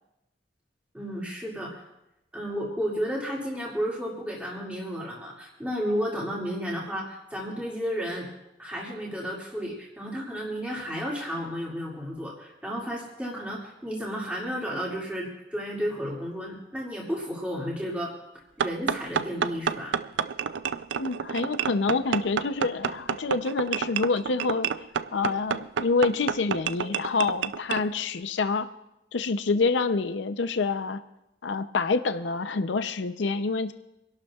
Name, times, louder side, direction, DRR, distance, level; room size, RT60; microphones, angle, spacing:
voice 1, 0.9-1.8 2.3-8.3 8.6-18.1 18.6-20.0, equal, 5° right, -5 dB, 2.3 m, -32 dB
sound 1, 18.6-27.8, right 7 dB, 70° right, 0.4 m, -29 dB
voice 2, 21.0-24.7 25.1-28.7 29.1-31.0 31.4-33.7, left 4 dB, 70° left, 10 dB, 0.6 m, -27 dB
26.5 x 12.0 x 2.4 m, 0.90 s
head